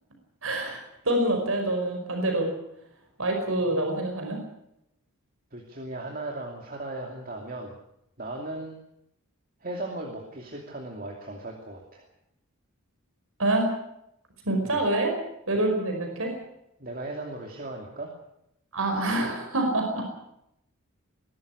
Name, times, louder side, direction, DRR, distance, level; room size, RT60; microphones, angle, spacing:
voice 1, 0.4-0.8 1.0-2.5 3.2-4.4 13.4-13.7 14.4-15.2 15.5-16.3 18.7-20.1, right 1 dB, 70° right, 3 dB, 5.2 m, -26 dB
voice 2, 5.5-7.7 8.2-8.8 9.6-12.1 14.6-14.8 16.8-18.1 18.9-19.2, right 2 dB, 40° right, 1 dB, 2.7 m, -37 dB
21.0 x 13.5 x 9.9 m, 0.79 s
head